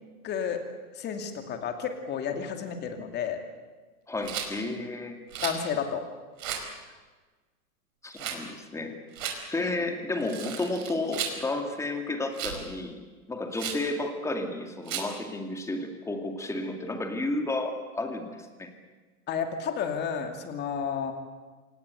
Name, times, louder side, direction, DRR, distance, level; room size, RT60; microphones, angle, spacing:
voice 1, 0.2-0.6 1.0-3.4 5.4-6.0 9.6-9.7 19.3-21.1, left 7 dB, 20° left, 6 dB, 2.5 m, -31 dB
voice 2, 4.1-5.2 8.0-9.0 9.5-13.0 13.3-18.7, left 2 dB, 5° left, 5 dB, 2.2 m, -32 dB
Rattle, 4.2-4.5 5.3-5.6 6.4-6.7 8.1-8.4 9.1-9.4 10.2-11.4 12.3-12.6 13.5-13.8 14.9-15.1, right 8 dB, 60° right, 4.9 m, -34 dB
27.0 x 19.0 x 8.1 m, 1.3 s
hypercardioid pair, 140°, 45 cm